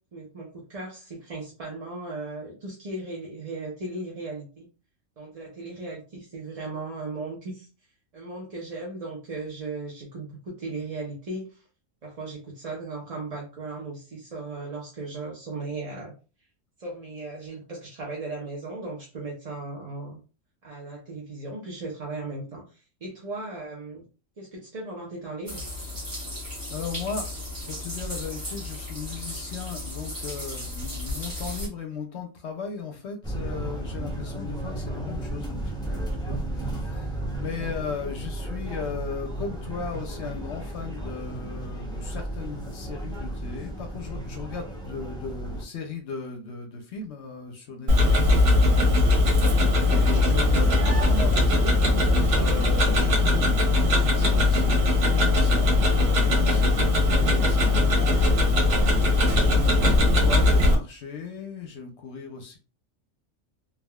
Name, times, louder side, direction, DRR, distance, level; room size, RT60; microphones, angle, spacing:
voice 1, 0.1-4.7 5.2-7.7 8.1-11.6 12.0-16.1 16.8-20.2 20.6-24.0 24.4-25.6 37.5-37.7, right 3 dB, 40° right, -3 dB, 0.6 m, -37 dB
sound 1, 25.5-31.7, left 1 dB, 20° right, 0.9 m, -35 dB
voice 2, 26.7-55.7 56.1-58.4 59.3-62.6, left 5 dB, 65° left, 3 dB, 0.8 m, -37 dB
sound 2, 33.2-45.6, right 1 dB, 5° left, 0.4 m, -34 dB
Tick-tock, 47.9-60.7, left 2 dB, 75° right, 1.2 m, -20 dB
3.4 x 2.3 x 2.2 m, 0.33 s
omnidirectional pair, 1.3 m